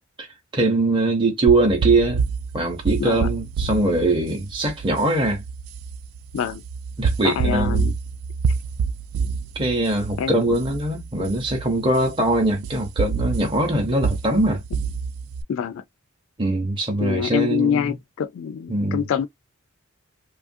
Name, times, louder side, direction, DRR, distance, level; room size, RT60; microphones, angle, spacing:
voice 1, 0.5-2.2 2.5-5.4 7.0-7.9 9.6-14.6 16.4-18.0 18.7-19.0, right 2 dB, 25° right, 0.7 m, -22 dB
sound 1, 1.5-15.4, right 5 dB, 85° right, 0.3 m, -28 dB
voice 2, 7.2-7.9 10.2-10.3 15.5-15.8 17.0-19.3, left 8 dB, 70° left, 0.3 m, -25 dB
2.8 x 2.4 x 2.6 m
head